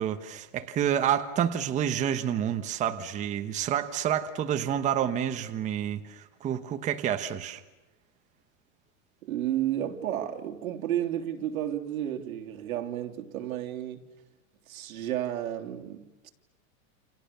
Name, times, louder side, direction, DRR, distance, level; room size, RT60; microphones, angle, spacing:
voice 1, 0.0-7.6, right 9 dB, 15° right, 1.1 m, -29 dB
voice 2, 9.2-14.1 14.7-16.3, right 11 dB, 90° right, 3.2 m, -32 dB
29.0 x 29.0 x 6.9 m
supercardioid pair, 170°, 41 cm